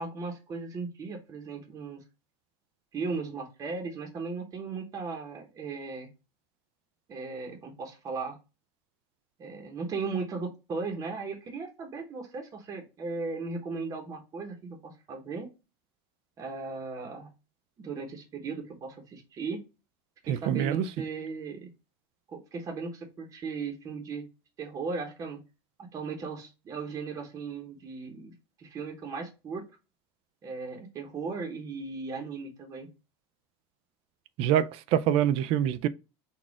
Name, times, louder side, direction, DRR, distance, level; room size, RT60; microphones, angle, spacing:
voice 1, 0.0-2.0 2.9-6.1 7.1-8.4 9.4-15.5 16.4-17.3 17.8-19.6 20.3-21.7 22.3-24.2 24.6-25.4 25.9-28.3 28.6-29.7 30.4-32.9, right 4 dB, 25° right, 0.9 m, -37 dB
voice 2, 20.3-20.9 34.4-35.9, right 10 dB, 50° right, 0.4 m, -25 dB
4.1 x 2.4 x 4.6 m
supercardioid pair, 145°, 13 cm